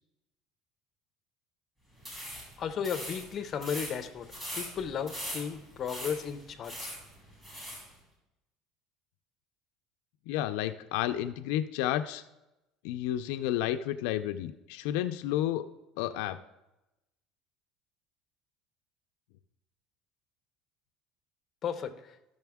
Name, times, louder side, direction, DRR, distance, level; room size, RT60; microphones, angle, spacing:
sound 1, 2.0-7.9, equal, 20° right, 2.6 m, -42 dB
voice 1, 2.6-4.3 4.5-7.0 21.6-22.1, left 7 dB, 25° left, 7 dB, 0.5 m, -35 dB
voice 2, 10.3-12.2 12.8-15.7 16.0-16.4, left 12 dB, 80° left, 8 dB, 0.4 m, -31 dB
12.5 x 6.4 x 3.5 m, 0.95 s
cardioid pair, 170°, 0 cm